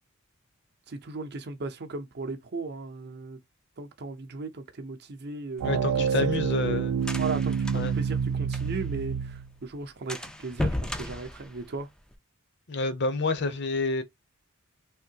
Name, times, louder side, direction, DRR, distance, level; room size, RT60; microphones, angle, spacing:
voice 1, 0.9-3.4 3.8-6.4 7.2-11.9, right 3 dB, 50° right, 0.7 m, -37 dB
voice 2, 5.6-7.0 7.7-7.9 12.7-14.0, left 3 dB, 50° left, 0.7 m, -28 dB
sound 1, 5.6-9.0 9.3-9.4 9.7-9.8 10.1-12.1, left 1 dB, 5° left, 0.3 m, -35 dB
sound 2, 5.6-9.5, right 7 dB, 85° right, 0.3 m, -28 dB
3.6 x 2.6 x 2.8 m
head